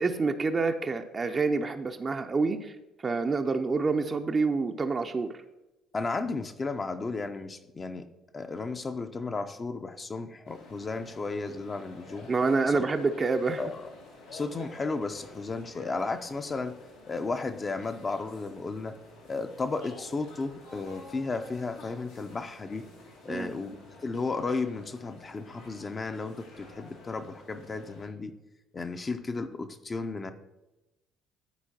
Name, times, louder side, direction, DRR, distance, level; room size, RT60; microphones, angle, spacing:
voice 1, 0.0-2.7 3.0-5.3 12.3-13.6 23.3-23.6, right 4 dB, 35° right, 6 dB, 0.5 m, -27 dB
voice 2, 5.9-8.1 8.3-12.3 12.7-12.8 13.6-13.9 14.3-16.7 17.1-19.0 19.3-22.9 23.2-23.8 24.0-28.3 28.7-30.3, left 3 dB, 30° left, 8 dB, 0.6 m, -34 dB
sound 1, 10.5-28.1, left 3 dB, 80° left, 1.3 m, -50 dB
12.5 x 4.4 x 2.8 m, 0.99 s
hypercardioid pair, 50°, 0 cm